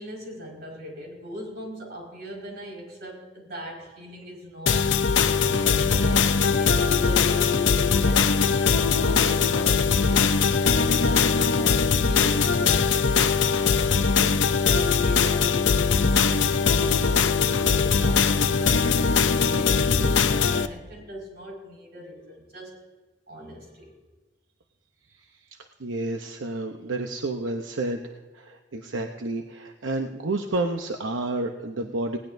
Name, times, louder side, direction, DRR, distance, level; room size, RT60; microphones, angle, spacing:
voice 1, 0.0-4.9 5.4-8.5 8.9-10.3 10.6-13.2 13.6-22.8 23.3-23.9, equal, 60° right, -1 dB, 5.1 m, -39 dB
sound 1, 4.7-20.7, left 5 dB, 75° left, 0.7 m, -21 dB
voice 2, 25.8-32.2, right 2 dB, 90° right, 4 dB, 0.9 m, -30 dB
19.5 x 18.0 x 2.7 m, 1.3 s
head